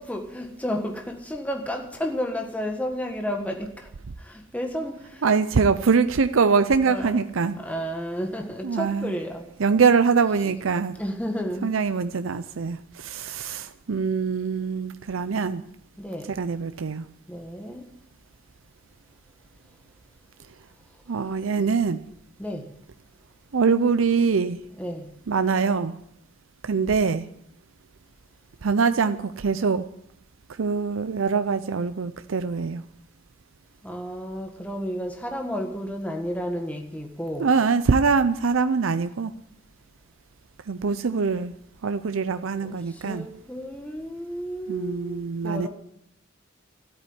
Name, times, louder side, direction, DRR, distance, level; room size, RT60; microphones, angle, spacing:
voice 1, 0.0-3.9 4.2-5.2 6.9-7.3 7.6-9.5 11.0-11.7 16.0-16.3 17.3-17.9 22.4-22.7 24.8-25.1 33.8-37.5 42.6-45.7, equal, 5° left, 1.5 m, -32 dB
voice 2, 5.2-7.6 8.6-9.2 9.6-10.9 11.6-15.6 16.3-17.0 21.1-22.0 23.5-24.6 25.3-25.9 26.6-27.2 28.6-29.8 30.6-32.8 37.4-39.3 40.7-41.5 41.8-43.3 44.7-45.7, right 5 dB, 90° right, 0.6 m, -23 dB
13.0 x 8.8 x 9.7 m
head